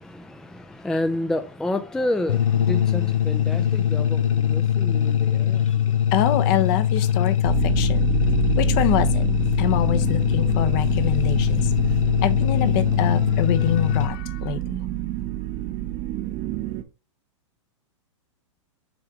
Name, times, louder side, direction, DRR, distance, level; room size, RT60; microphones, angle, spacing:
voice 1, 0.0-6.0, left 1 dB, 5° left, 0.4 m, -30 dB
sound 1, 2.3-14.1, left 10 dB, 85° left, 0.7 m, -22 dB
voice 2, 6.1-8.1 8.5-9.3 9.6-11.7 12.2-14.8, left 10 dB, 45° left, 0.9 m, -25 dB
sound 2, 7.4-16.8, right 16 dB, 40° right, 1.0 m, -28 dB
6.2 x 3.5 x 4.9 m
hypercardioid pair, 120°, 16 cm